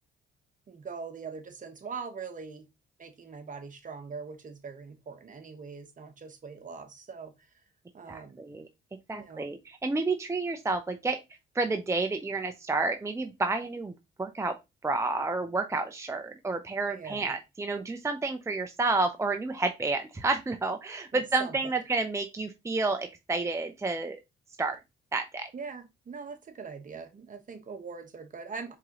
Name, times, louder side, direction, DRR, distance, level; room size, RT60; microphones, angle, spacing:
voice 1, 0.7-2.6 3.0-7.3 7.9-8.4 9.1-9.5 16.9-17.3 21.1-21.5 25.5-28.8, right 5 dB, 40° right, 1.2 m, -42 dB
voice 2, 8.1-8.7 9.1-11.2 11.5-13.9 14.2-14.5 14.8-24.2 24.6-24.8 25.1-25.5, right 3 dB, 15° right, 0.6 m, -30 dB
4.7 x 3.7 x 3.0 m
cardioid pair, 90°, 20 cm